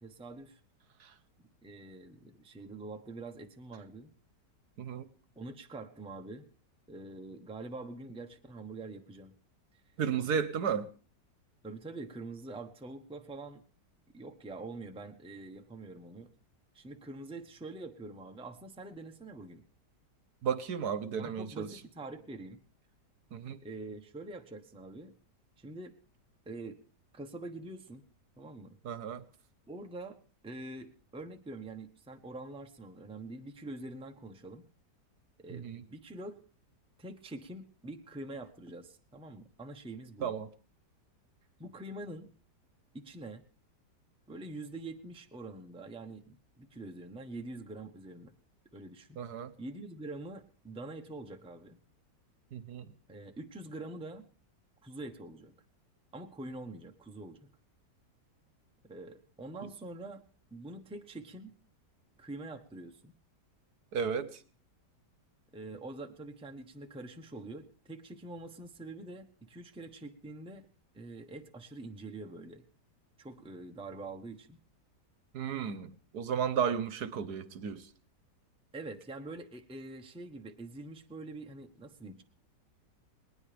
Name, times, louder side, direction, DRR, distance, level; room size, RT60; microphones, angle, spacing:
voice 1, 0.0-0.6 1.6-4.1 5.4-6.5 6.9-9.3 11.6-13.6 14.1-16.3 16.7-19.6 21.2-22.6 23.6-25.1 25.6-26.0 26.4-26.8 27.1-28.0 28.4-28.8 29.7-30.2 30.4-34.6 35.4-36.4 37.0-40.4 41.6-42.3 42.9-43.4 44.3-48.3 48.7-49.2 49.6-51.8 53.1-54.2 54.8-55.5 56.1-57.5 58.8-60.2 60.5-61.5 62.2-63.1 65.5-70.7 70.9-72.6 73.2-74.6 78.7-82.2, right 2 dB, 5° right, 0.8 m, -45 dB
voice 2, 4.8-5.1 10.0-10.9 20.4-21.7 23.3-23.6 28.8-29.2 35.5-35.8 40.2-40.5 49.2-49.5 52.5-52.9 63.9-64.3 75.3-77.8, right 7 dB, 70° right, 1.4 m, -33 dB
19.5 x 19.5 x 3.4 m
omnidirectional pair, 1.9 m